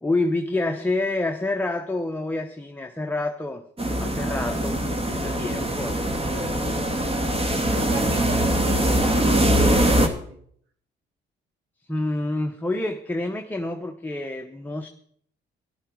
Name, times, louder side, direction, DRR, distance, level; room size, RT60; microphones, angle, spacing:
voice 1, 0.0-3.6 4.0-6.0 11.9-14.9, left 2 dB, 10° left, 4 dB, 1.0 m, -28 dB
sound 1, 3.8-10.1, right 1 dB, 30° right, 2.0 m, -22 dB
voice 2, 7.7-10.4, right 3 dB, 85° right, 6 dB, 2.0 m, -35 dB
13.5 x 12.0 x 4.7 m, 0.63 s
cardioid pair, 90°, 20 cm